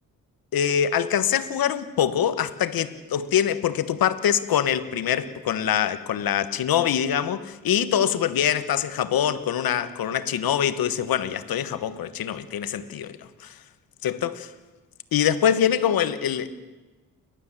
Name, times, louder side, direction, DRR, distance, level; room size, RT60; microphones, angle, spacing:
voice 1, 0.5-13.5 14.0-14.5 15.1-16.5, left 9 dB, 80° left, 1.4 m, -24 dB
29.5 x 12.5 x 7.5 m
cardioid pair, 65°, 35 cm